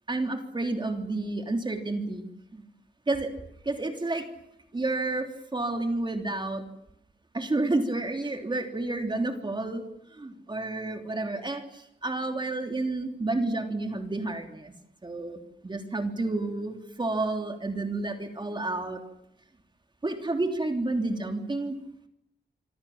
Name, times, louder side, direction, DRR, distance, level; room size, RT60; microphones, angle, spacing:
voice 1, 0.1-2.2 2.5-2.6 3.1-3.3 3.6-4.3 4.7-6.6 7.3-9.8 10.2-14.7 15.0-19.0 20.0-21.7, right 2 dB, 25° right, 5 dB, 3.2 m, -30 dB
28.0 x 25.0 x 7.4 m, 0.80 s
wide cardioid pair, 175°, 18 cm